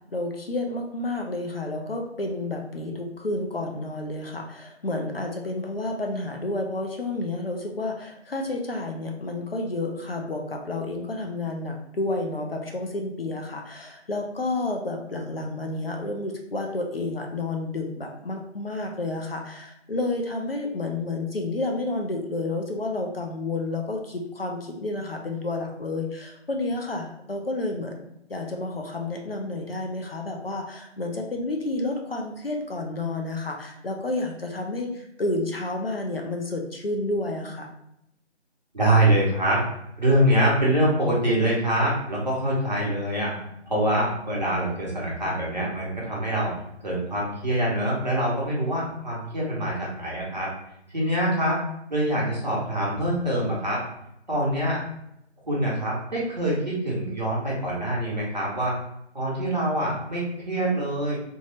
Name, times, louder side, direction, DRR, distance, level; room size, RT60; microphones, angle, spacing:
voice 1, 0.1-28.0 28.3-37.7, left 2 dB, 55° left, 1 dB, 0.5 m, -30 dB
voice 2, 38.7-39.6 40.0-43.3 43.6-46.5 46.8-50.5 50.9-51.6 51.9-53.8 54.3-54.8 55.5-58.7 59.1-61.2, right 1 dB, 40° right, -6 dB, 0.9 m, -24 dB
2.9 x 2.2 x 2.9 m, 0.79 s
figure-of-eight pair, 165°, 35 cm